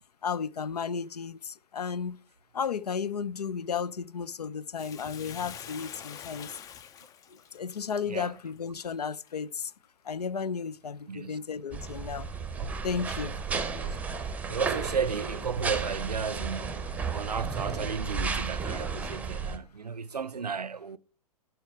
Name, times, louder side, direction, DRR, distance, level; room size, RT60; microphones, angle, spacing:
voice 1, 0.2-2.2 2.5-6.6 7.3-9.7 10.0-12.3 12.8-13.3, left 6 dB, 80° left, 0.5 m, -33 dB
Bathtub (filling or washing), 4.8-9.3 9.8-9.9, left 9 dB, 15° left, 0.4 m, -46 dB
voice 2, 8.0-8.4 11.1-11.4 11.8-11.9 12.6-21.0, right 6 dB, 85° right, 0.5 m, -35 dB
sound 1, 11.7-19.6, right 5 dB, 5° right, 0.8 m, -33 dB
11.0 x 4.6 x 4.5 m
figure-of-eight pair, 110°, 20 cm